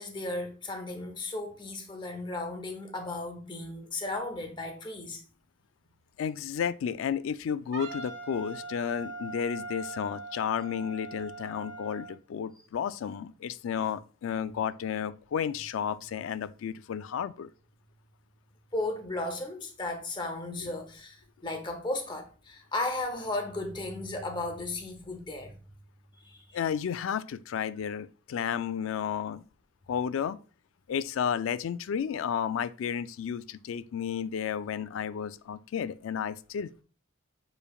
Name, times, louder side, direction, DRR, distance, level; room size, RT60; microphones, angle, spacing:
voice 1, 0.0-5.2 18.7-25.5 26.2-26.4, left 2 dB, 25° left, 0.8 m, -35 dB
voice 2, 6.2-17.5 26.5-29.4 29.9-30.4 30.9-36.8, left 8 dB, 75° left, 0.3 m, -32 dB
Wind instrument woodwind instrument, 7.7-12.2, right 3 dB, 60° right, 0.8 m, -41 dB
6.8 x 3.3 x 2.3 m
head